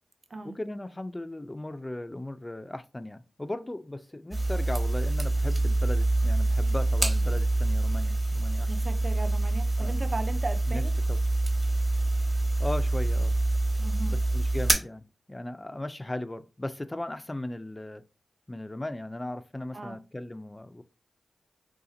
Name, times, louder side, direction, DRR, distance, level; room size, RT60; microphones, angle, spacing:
voice 1, 0.4-8.7 9.8-10.0 10.7-10.8 11.1-11.2 12.6-13.4 14.1-18.0 18.5-20.8, left 1 dB, 20° left, 0.3 m, -37 dB
sound 1, 4.3-14.7, right 2 dB, 30° right, 1.0 m, -26 dB
voice 2, 8.6-10.9 13.8-14.2 19.7-20.0, right 2 dB, 50° right, 0.5 m, -37 dB
2.7 x 2.4 x 3.8 m
cardioid pair, 55°, 0 cm